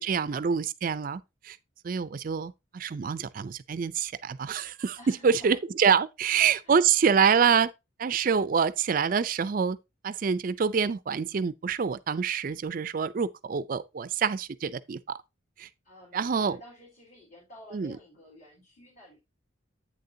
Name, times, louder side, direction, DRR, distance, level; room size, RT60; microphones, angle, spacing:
voice 1, 0.0-1.6 1.8-7.7 8.0-9.8 10.0-15.2 15.6-15.7 16.1-16.6 17.7-18.0, right 6 dB, 45° right, 0.4 m, -26 dB
voice 2, 5.0-5.6 6.2-6.4 6.6-6.8 15.8-19.2, left 1 dB, 45° left, 3.5 m, -51 dB
8.6 x 6.7 x 2.7 m
head